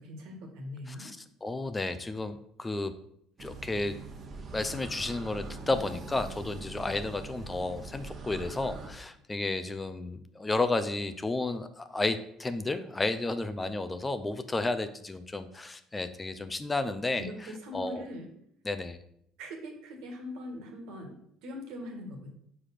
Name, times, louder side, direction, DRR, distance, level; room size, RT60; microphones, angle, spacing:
voice 1, 0.0-1.1 17.2-18.3 19.4-22.3, left 1 dB, 70° right, 3 dB, 1.6 m, -41 dB
voice 2, 0.9-2.9 3.4-4.0 4.5-17.3 17.7-18.1 18.6-19.0, left 2 dB, 20° left, 11 dB, 0.6 m, -32 dB
sound 1, 3.4-8.9, right 3 dB, 45° right, 1.1 m, -42 dB
4.9 x 4.8 x 5.8 m, 0.71 s
hypercardioid pair, 65°, 0 cm